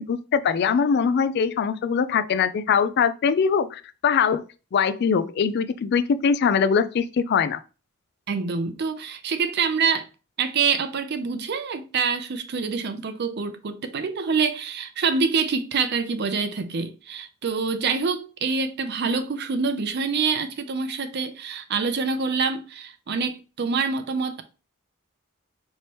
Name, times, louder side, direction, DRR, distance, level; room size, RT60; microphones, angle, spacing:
voice 1, 0.0-4.4 4.7-7.6, left 6 dB, 50° left, 0.3 m, -22 dB
voice 2, 8.3-10.1 10.4-24.4, right 5 dB, 50° right, 0.5 m, -26 dB
4.5 x 3.1 x 3.0 m
head